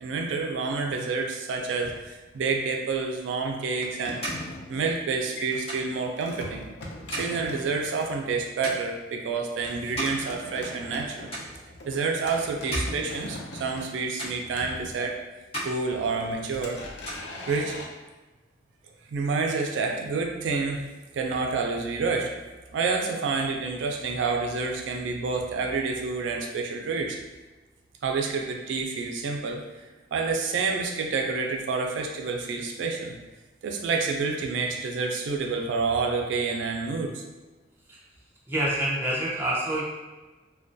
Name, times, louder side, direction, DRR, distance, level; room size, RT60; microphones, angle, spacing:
voice 1, 0.0-4.2 4.7-6.6 7.1-11.3 11.9-15.2 15.6-16.8 17.5-17.8 19.1-20.9 21.1-22.3 22.7-27.2 28.0-29.6 30.1-33.1 33.6-37.2, right 4 dB, 85° right, 2 dB, 0.3 m, -28 dB
sound 1, 1.8-2.6 3.8-8.2 9.6-15.4 15.9-17.9, left 1 dB, 65° left, 0.4 m, -42 dB
sound 2, 4.1-11.0 11.3-12.0 12.4-13.9 14.2-15.1 15.4-16.6 16.8-18.0, right 1 dB, 35° left, 1.0 m, -39 dB
voice 2, 38.5-39.8, right 1 dB, 15° right, -6 dB, 0.5 m, -27 dB
2.2 x 2.2 x 2.5 m, 1.2 s
head